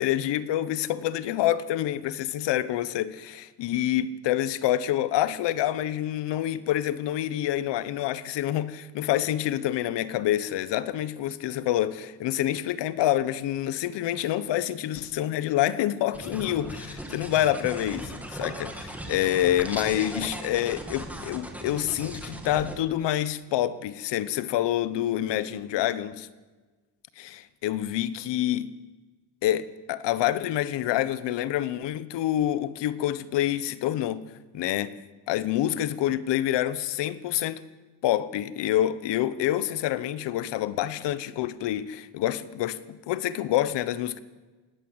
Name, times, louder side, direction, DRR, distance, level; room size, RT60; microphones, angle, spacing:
voice 1, 0.0-26.3 27.2-28.7 29.4-34.2 34.5-34.9 35.3-37.6 38.0-44.2, left 12 dB, 70° left, 1.1 m, -27 dB
sound 1, 16.1-22.7, right 1 dB, 5° right, 2.1 m, -38 dB
19.5 x 17.0 x 8.0 m
cardioid pair, 165°, 44 cm